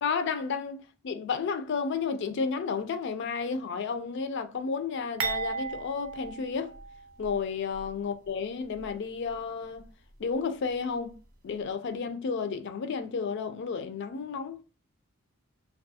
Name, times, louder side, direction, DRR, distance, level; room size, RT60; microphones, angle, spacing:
voice 1, 0.0-0.8 1.0-6.7 7.2-9.9 10.2-11.2 11.4-14.6, left 5 dB, 50° left, 0.3 m, -32 dB
sound 1, 5.2-7.4 7.7-7.9 8.7-8.9, right 4 dB, 60° right, 0.5 m, -35 dB
2.3 x 2.3 x 2.6 m
head